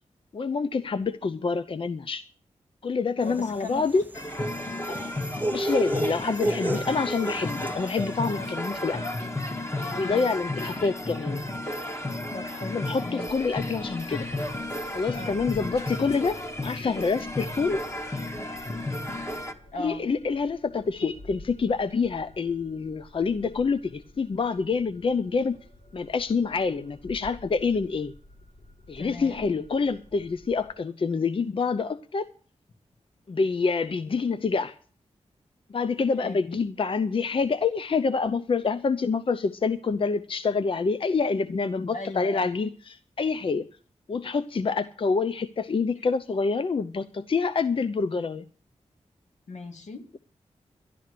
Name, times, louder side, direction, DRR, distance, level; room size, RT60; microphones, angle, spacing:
voice 1, 0.3-2.2 2.8-4.0 5.5-9.0 9.9-11.4 12.7-14.3 14.9-17.8 19.8-25.6 25.9-28.1 28.9-32.3 33.3-34.7 35.7-43.7 44.1-48.4, left 4 dB, 45° left, 0.6 m, -27 dB
voice 2, 3.2-4.0 4.9-5.1 8.3-8.6 9.7-10.8 12.3-13.3 15.1-15.4 19.7-20.1 29.0-29.5 36.2-36.4 41.9-42.5 45.9-46.1 49.5-50.1, left 3 dB, 80° left, 2.3 m, -39 dB
sound 1, 3.3-7.9, right 2 dB, 15° right, 0.7 m, -31 dB
sound 2, 4.1-19.5, left 1 dB, 20° left, 1.7 m, -33 dB
sound 3, 13.3-30.7, left 1 dB, 65° left, 6.8 m, -51 dB
12.0 x 12.0 x 6.7 m
wide cardioid pair, 100°, 12 cm